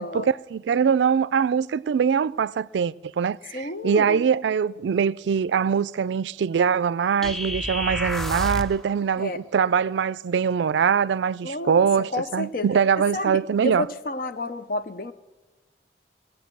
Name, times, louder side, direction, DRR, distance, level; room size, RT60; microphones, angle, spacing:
voice 1, 0.0-13.9, right 7 dB, 85° right, 0.3 m, -23 dB
voice 2, 3.5-4.3 9.2-9.4 11.4-11.9 12.1-12.7 13.1-15.1, left 1 dB, 50° left, 0.6 m, -30 dB
sound 1, 7.2-8.8, equal, ahead, 0.4 m, -29 dB
19.5 x 7.7 x 6.0 m
head